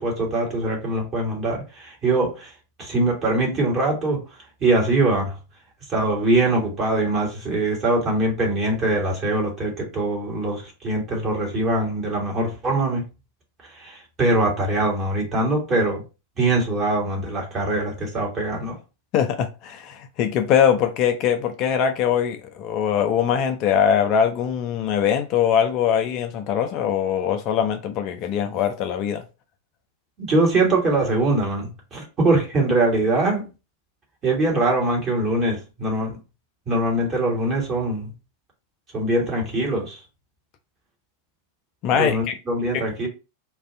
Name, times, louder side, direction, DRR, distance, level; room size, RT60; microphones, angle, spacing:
voice 1, 0.0-2.5 2.8-4.2 4.6-5.3 5.9-13.1 13.7-16.0 16.4-18.8 30.2-33.5 34.2-36.2 36.7-38.1 38.9-40.0 41.9-43.1, right 2 dB, 30° right, 1.3 m, -22 dB
voice 2, 19.1-29.2 41.8-42.4 42.7-42.8, left 8 dB, 40° left, 0.3 m, -22 dB
2.4 x 2.4 x 3.3 m
figure-of-eight pair, 90°, 0 cm